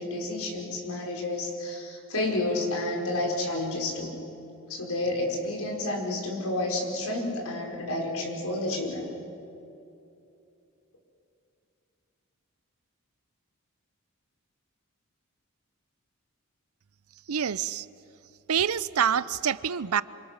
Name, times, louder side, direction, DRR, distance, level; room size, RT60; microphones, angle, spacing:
voice 1, 0.0-4.1 4.7-9.1, left 2 dB, 80° left, 0 dB, 4.8 m, -30 dB
voice 2, 17.3-17.8 18.5-20.0, right 8 dB, 80° right, 17 dB, 0.6 m, -26 dB
27.0 x 25.5 x 6.6 m, 2.8 s
head